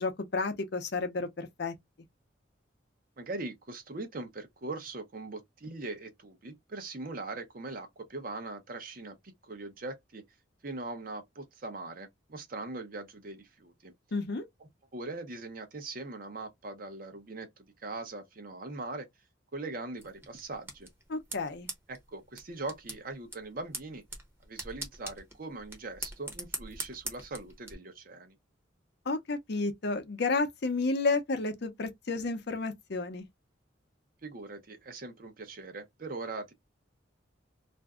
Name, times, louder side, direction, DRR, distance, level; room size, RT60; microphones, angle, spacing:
voice 1, 0.0-1.7 14.1-14.4 21.1-21.7 29.1-33.3, left 3 dB, 60° left, 0.6 m, -31 dB
voice 2, 3.2-10.2 10.6-13.9 14.9-19.1 19.5-20.9 21.9-24.0 24.4-28.3 34.2-36.5, right 2 dB, 50° right, 0.7 m, -41 dB
sound 1, 20.0-27.7, right 2 dB, 10° right, 0.8 m, -43 dB
2.5 x 2.2 x 3.5 m
head